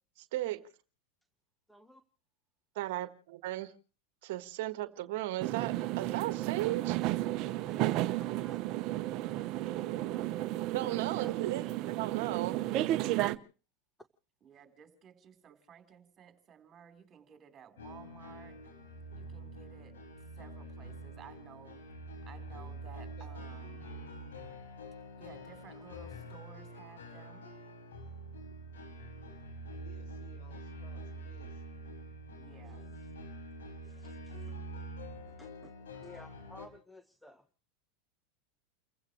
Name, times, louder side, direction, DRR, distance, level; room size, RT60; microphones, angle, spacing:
voice 1, 0.2-0.6 2.7-3.7 4.2-7.0 9.9-10.1 10.7-12.6, right 16 dB, 70° right, 12 dB, 1.3 m, -36 dB
voice 2, 1.7-2.0 6.7-8.6 32.6-32.9 33.8-34.5 35.3-35.7 36.0-37.4, left 1 dB, 5° left, 11 dB, 1.0 m, -56 dB
sound 1, 5.4-13.3, right 15 dB, 50° right, 0.9 m, -33 dB
voice 3, 10.8-11.6 14.4-18.6 19.1-19.9 20.4-21.8 22.3-23.8 25.2-27.4 32.4-32.8, right 8 dB, 30° right, 7 dB, 3.8 m, -55 dB
sound 2, 17.8-36.7, right 1 dB, 85° left, 5.2 m, -46 dB
voice 4, 22.8-23.5 29.7-31.6, left 3 dB, 65° left, 7 dB, 6.2 m, -58 dB
30.0 x 15.5 x 3.1 m, 0.37 s
hypercardioid pair, 110°, 0 cm